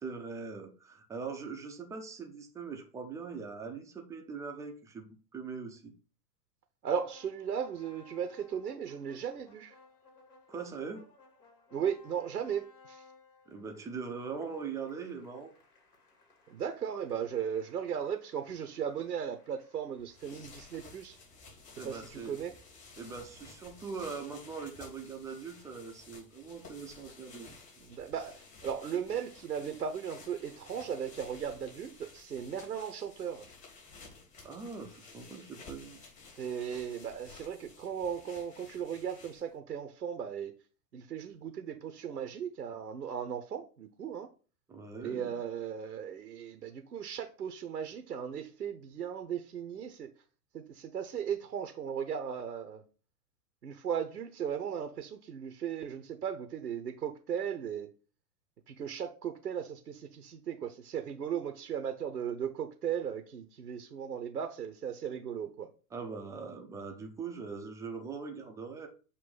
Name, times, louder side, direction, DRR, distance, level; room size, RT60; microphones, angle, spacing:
voice 1, 0.0-5.9 10.5-11.0 13.5-15.5 21.8-22.4 23.0-27.5 34.4-36.1 44.7-45.3 65.9-68.9, right 5 dB, 5° right, 0.4 m, -41 dB
voice 2, 6.8-9.8 11.7-13.0 16.5-21.2 21.8-22.5 27.8-33.5 36.4-40.5 40.9-44.3 45.0-50.1 50.5-52.8 53.6-57.9 58.7-65.7, right 8 dB, 90° right, 0.8 m, -37 dB
sound 1, 7.1-21.2, left 3 dB, 70° left, 2.5 m, -62 dB
sound 2, 20.0-39.6, left 4 dB, 40° left, 3.0 m, -54 dB
6.8 x 2.6 x 5.3 m
figure-of-eight pair, 105°, 47 cm